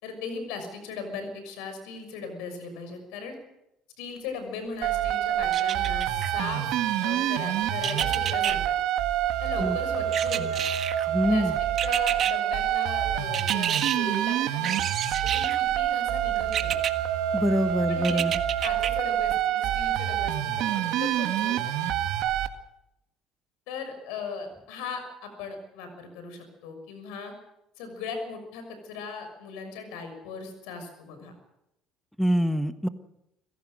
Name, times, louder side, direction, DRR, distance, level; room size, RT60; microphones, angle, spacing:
voice 1, 0.0-3.4 4.0-8.7 9.4-10.6 11.3-14.8 15.2-16.7 17.9-18.2 18.6-21.7 23.7-27.3 27.8-31.3, left 5 dB, 85° left, 7 dB, 6.1 m, -38 dB
sound 1, 4.8-22.5, right 11 dB, 75° right, 1.9 m, -27 dB
sound 2, 5.5-6.3 7.8-8.6 10.1-11.1 11.8-12.3 13.3-14.0 14.6-15.6 16.5-16.9 18.0-18.9 19.4-19.5, right 9 dB, 55° right, 1.6 m, -29 dB
voice 2, 11.1-11.5 17.3-18.4 32.2-32.9, equal, ahead, 10 dB, 1.3 m, -25 dB
25.0 x 16.5 x 6.5 m, 0.83 s
supercardioid pair, 90°, 0 cm